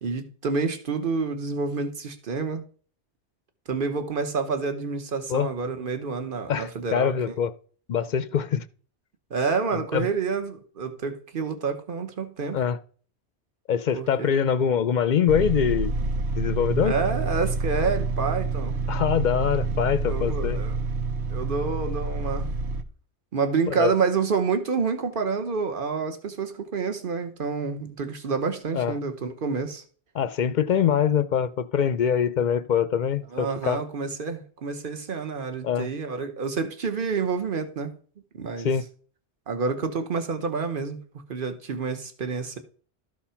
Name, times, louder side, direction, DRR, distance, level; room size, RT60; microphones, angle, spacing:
voice 1, 0.0-2.7 3.7-7.4 9.3-12.6 13.9-14.5 16.8-18.8 20.1-20.8 21.3-22.5 23.3-29.8 33.3-38.0 38.3-38.7 39.5-41.0 41.3-42.6, right 5 dB, 55° right, 1.3 m, -28 dB
voice 2, 6.5-7.5 7.9-8.6 9.7-10.1 12.5-12.8 13.7-15.9 16.4-17.0 18.9-20.6 23.7-23.9 28.7-28.9 30.1-33.8 35.6-35.9 38.6-38.8, left 8 dB, 55° left, 0.5 m, -24 dB
sound 1, 15.3-22.8, right 4 dB, 80° right, 1.1 m, -28 dB
12.5 x 4.3 x 5.7 m
omnidirectional pair, 1.1 m